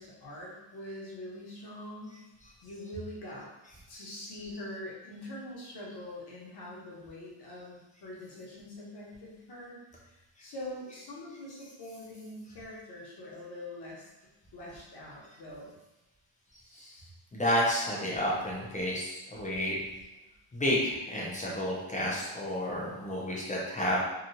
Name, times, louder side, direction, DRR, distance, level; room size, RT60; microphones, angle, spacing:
voice 1, 0.0-2.2 2.6-3.5 3.9-14.1 14.5-15.7, left 1 dB, 55° left, -5 dB, 1.0 m, -44 dB
voice 2, 17.3-19.8 20.5-24.0, equal, 15° left, -5 dB, 0.5 m, -31 dB
3.0 x 2.3 x 2.6 m, 1.0 s
cardioid pair, 140°, 48 cm